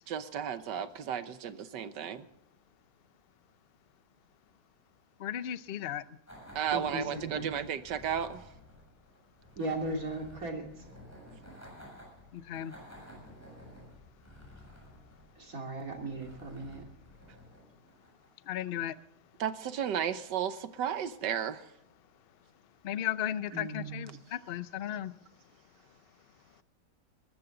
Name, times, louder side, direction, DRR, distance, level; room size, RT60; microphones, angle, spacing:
voice 1, 0.1-2.2 6.5-8.4 19.4-21.6, right 8 dB, 75° right, 1.6 m, -33 dB
voice 2, 5.2-6.0 12.3-12.7 18.5-18.9 22.8-25.1, left 11 dB, 75° left, 0.5 m, -35 dB
sound 1, 6.3-18.4, equal, 10° left, 7.3 m, -53 dB
voice 3, 6.7-7.5 9.6-10.6 15.4-16.8 23.5-24.1, right 2 dB, 50° right, 3.2 m, -37 dB
21.0 x 15.0 x 3.9 m
omnidirectional pair, 1.9 m